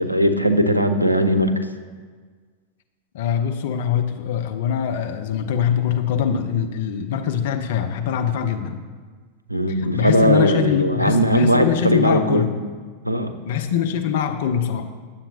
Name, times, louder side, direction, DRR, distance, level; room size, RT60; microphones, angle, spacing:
voice 1, 0.0-1.7 9.5-12.5 13.0-13.3, equal, 90° right, 8 dB, 0.5 m, -19 dB
voice 2, 3.1-8.8 9.9-12.5 13.4-14.9, left 8 dB, 55° left, 7 dB, 0.6 m, -23 dB
10.0 x 7.1 x 2.8 m, 1.5 s
figure-of-eight pair, 90°, 0 cm